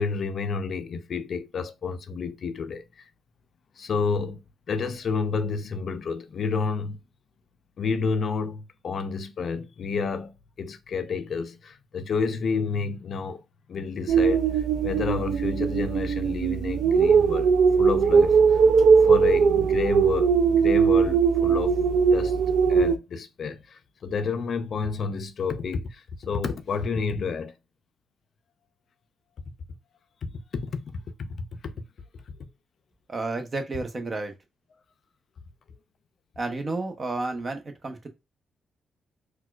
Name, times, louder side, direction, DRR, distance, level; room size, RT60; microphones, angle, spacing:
voice 1, 0.0-3.1 3.8-4.4 4.7-7.0 7.8-13.4 13.7-18.6 19.0-21.8 22.1-22.3 22.7-27.5 30.2-31.8, left 5 dB, 60° left, 0.4 m, -30 dB
sound 1, 14.1-23.0, right 6 dB, 75° right, 0.3 m, -20 dB
voice 2, 33.1-34.3 36.4-38.1, right 3 dB, 35° right, 0.8 m, -31 dB
4.2 x 2.2 x 2.3 m
cardioid pair, 85°, 0 cm